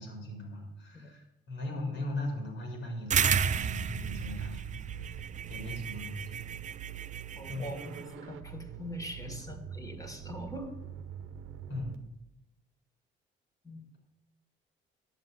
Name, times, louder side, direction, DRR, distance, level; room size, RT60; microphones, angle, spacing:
voice 1, 0.0-4.9 5.5-6.4 7.5-7.9 9.2-9.4 11.7-12.0, left 1 dB, 80° left, 1 dB, 4.2 m, -39 dB
sound 1, 3.1-8.0, right 7 dB, 40° right, 0.4 m, -32 dB
sound 2, 4.9-12.0, right 9 dB, 90° right, 0.9 m, -45 dB
voice 2, 7.3-10.7 13.6-13.8, equal, 15° left, 6 dB, 1.9 m, -43 dB
9.4 x 7.4 x 7.7 m, 0.89 s
cardioid pair, 90°, 20 cm